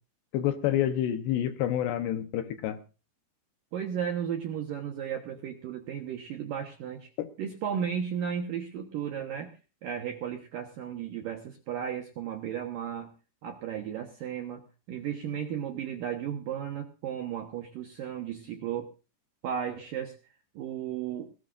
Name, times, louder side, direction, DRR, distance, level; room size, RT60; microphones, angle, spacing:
voice 1, 0.3-2.8 7.2-7.3, left 11 dB, 75° left, 9 dB, 2.8 m, -28 dB
voice 2, 3.7-7.1 7.4-9.5 9.8-13.1 13.4-18.9 19.4-20.2 20.6-21.3, right 8 dB, 75° right, 5 dB, 2.1 m, -34 dB
20.0 x 17.0 x 2.6 m, 0.33 s
omnidirectional pair, 5.6 m